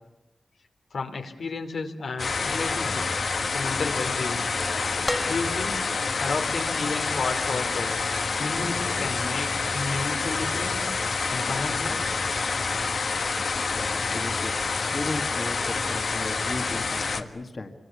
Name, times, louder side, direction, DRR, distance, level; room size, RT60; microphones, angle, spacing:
voice 1, 0.9-3.2 3.5-4.5 5.3-5.8 6.2-8.0 8.4-10.9 11.3-12.0, left 4 dB, 80° left, 5 dB, 2.8 m, -32 dB
sound 1, 2.2-17.2, left 4 dB, 65° left, 1.6 m, -27 dB
sound 2, 5.1-6.1 7.6-7.7, left 1 dB, 10° left, 2.0 m, -32 dB
voice 2, 13.7-14.6 14.9-17.7, left 2 dB, 40° left, 5 dB, 1.8 m, -35 dB
27.5 x 24.0 x 8.4 m, 0.94 s
wide cardioid pair, 140°, 0 cm